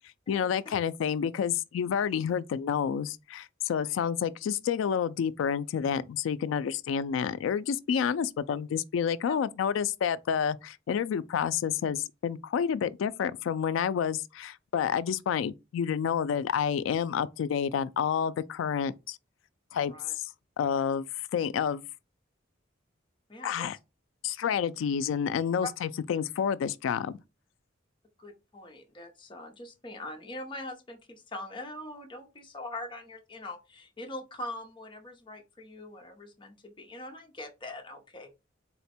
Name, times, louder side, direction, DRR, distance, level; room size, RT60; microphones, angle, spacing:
voice 1, 0.3-19.2 19.7-20.3 20.6-21.1 21.3-21.8 23.4-23.8 24.2-27.2, left 7 dB, 90° left, 0.3 m, -29 dB
voice 2, 19.8-20.1 20.8-20.9 23.3-23.7 28.2-38.3, left 1 dB, 25° left, 0.7 m, -43 dB
4.1 x 2.1 x 4.2 m
head